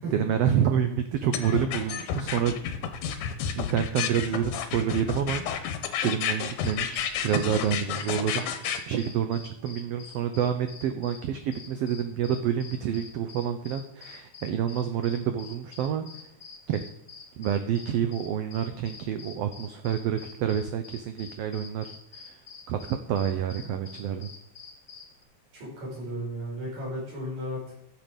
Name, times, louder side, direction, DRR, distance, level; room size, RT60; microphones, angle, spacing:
voice 1, 0.1-2.6 3.5-5.7 6.0-16.1 16.7-16.8 17.4-22.4 22.7-24.3, right 9 dB, 85° right, 8 dB, 1.4 m, -28 dB
sound 1, 1.3-8.8, left 8 dB, 85° left, 2.4 m, -30 dB
sound 2, 6.6-11.3 11.5-25.2, left 5 dB, 45° left, 1.1 m, -47 dB
voice 2, 25.5-27.8, equal, 65° right, -5 dB, 6.1 m, -34 dB
11.5 x 7.3 x 5.1 m, 0.74 s
omnidirectional pair, 3.5 m